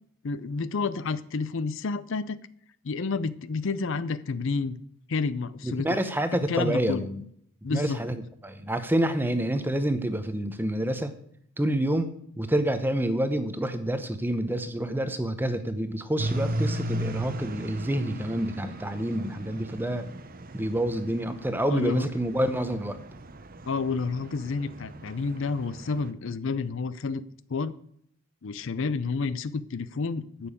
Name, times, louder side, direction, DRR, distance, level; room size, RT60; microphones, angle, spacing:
voice 1, 0.2-2.4 2.8-4.8 5.1-6.0 6.5-7.1 7.6-8.0 21.7-22.1 23.7-27.2 27.5-27.7 28.4-30.5, left 4 dB, 55° left, 16 dB, 0.5 m, -30 dB
voice 2, 5.6-7.2 7.7-11.1 11.6-12.1 12.4-20.1 20.5-23.0, right 1 dB, 10° right, 10 dB, 0.8 m, -28 dB
sound 1, 16.2-26.1, right 1 dB, 40° right, 0.8 m, -36 dB
8.9 x 6.9 x 8.4 m, 0.68 s
head